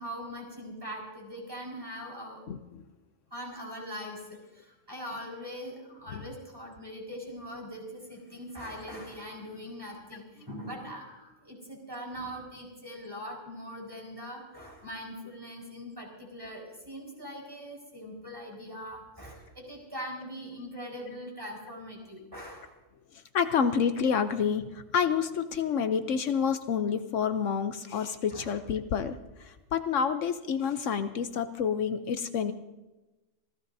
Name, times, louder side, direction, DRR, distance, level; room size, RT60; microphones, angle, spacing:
voice 1, 0.0-2.4 3.3-22.7 28.3-28.5, equal, 15° right, -2 dB, 4.8 m, -41 dB
voice 2, 2.5-2.8 6.1-6.2 23.3-32.5, left 7 dB, 75° left, 9 dB, 1.1 m, -28 dB
27.0 x 16.5 x 2.7 m, 1.1 s
omnidirectional pair, 1.3 m